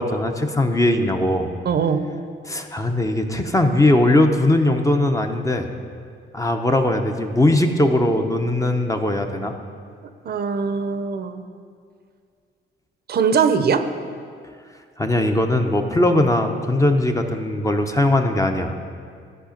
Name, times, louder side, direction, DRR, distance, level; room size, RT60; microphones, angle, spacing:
voice 1, 0.0-1.5 2.5-5.7 6.3-9.5 15.0-18.8, left 1 dB, 15° left, 5 dB, 0.7 m, -19 dB
voice 2, 1.6-2.0 10.2-11.4 13.1-13.8, right 6 dB, 55° right, 9 dB, 0.7 m, -21 dB
13.5 x 4.9 x 5.2 m, 2.2 s
cardioid pair, 90°, 20 cm